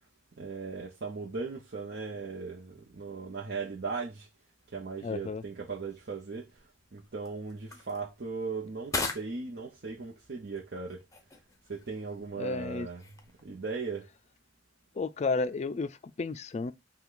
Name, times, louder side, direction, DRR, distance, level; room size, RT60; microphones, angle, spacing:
voice 1, 0.4-4.3 4.7-11.0 11.7-13.1 13.4-14.1, right 4 dB, 55° right, 0.8 m, -38 dB
sound 1, 4.6-13.8, left 3 dB, 15° left, 0.8 m, -43 dB
voice 2, 5.0-5.4 12.4-12.9 15.0-16.7, left 4 dB, 35° left, 0.4 m, -32 dB
5.7 x 2.3 x 3.8 m
head